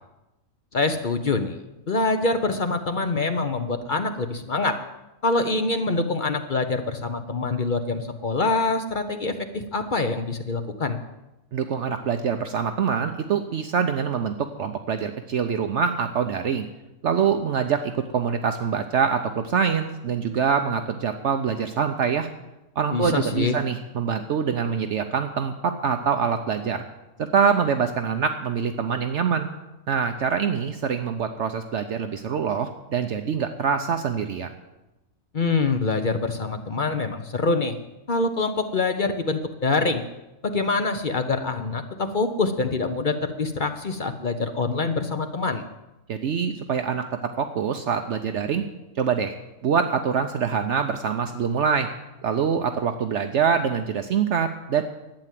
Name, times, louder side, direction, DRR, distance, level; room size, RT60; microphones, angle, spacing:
voice 1, 0.7-1.6 1.9-4.8 5.2-11.0 22.9-23.6 35.3-37.8 38.1-40.0 40.4-45.6, left 3 dB, 45° left, 7 dB, 0.8 m, -25 dB
voice 2, 11.5-16.7 17.0-22.3 22.8-26.8 27.2-29.5 29.9-34.5 46.1-48.6 49.0-49.3 49.6-51.9 52.2-54.8, right 6 dB, 65° right, 7 dB, 1.0 m, -25 dB
12.0 x 9.0 x 7.5 m, 0.98 s
omnidirectional pair, 1.4 m